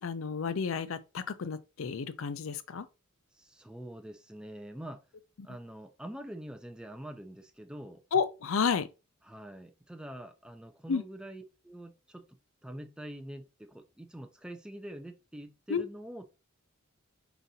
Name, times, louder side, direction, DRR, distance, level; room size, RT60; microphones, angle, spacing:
voice 1, 0.0-2.9 8.1-8.9 10.9-11.0 15.7-15.8, left 6 dB, 70° left, 0.5 m, -31 dB
voice 2, 3.3-5.0 5.4-8.0 9.2-12.2 12.6-16.2, right 1 dB, 5° right, 0.3 m, -45 dB
4.9 x 4.0 x 2.7 m
head